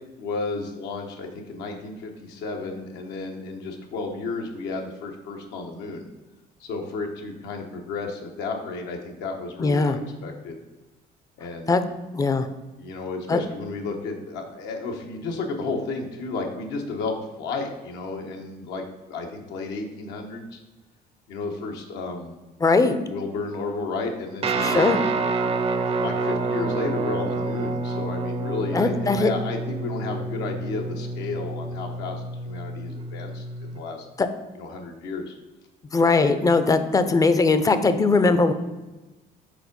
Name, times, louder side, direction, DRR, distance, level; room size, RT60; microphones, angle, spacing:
voice 1, 0.2-6.1 6.6-10.6 11.4-11.7 12.8-20.6 21.3-22.3 23.1-24.9 26.0-34.1 34.5-35.3, left 3 dB, 85° left, 2 dB, 1.0 m, -32 dB
voice 2, 9.6-10.0 11.7-11.8 12.1-12.5 13.3-13.4 22.6-23.0 24.6-25.0 28.7-29.3 34.2-34.3 35.9-38.5, left 3 dB, 20° left, 10 dB, 0.4 m, -20 dB
Guitar, 24.4-33.8, right 3 dB, 35° right, 0.5 m, -28 dB
5.0 x 3.8 x 5.1 m, 1.1 s
cardioid pair, 110°, 17 cm